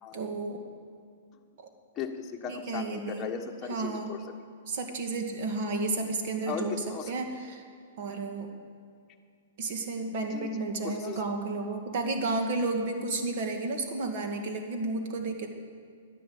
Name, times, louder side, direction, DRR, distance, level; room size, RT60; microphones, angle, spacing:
voice 1, 0.1-0.6 1.6-1.7 2.5-3.3 3.7-4.2 4.7-6.7 7.1-7.6 8.0-8.5 9.6-15.5, right 3 dB, 50° right, 4 dB, 2.0 m, -32 dB
voice 2, 2.0-4.2 6.5-7.1 10.3-10.5 10.8-11.2, left 6 dB, 20° left, 1 dB, 1.4 m, -37 dB
12.0 x 10.5 x 7.9 m, 2.3 s
hypercardioid pair, 145°, 0 cm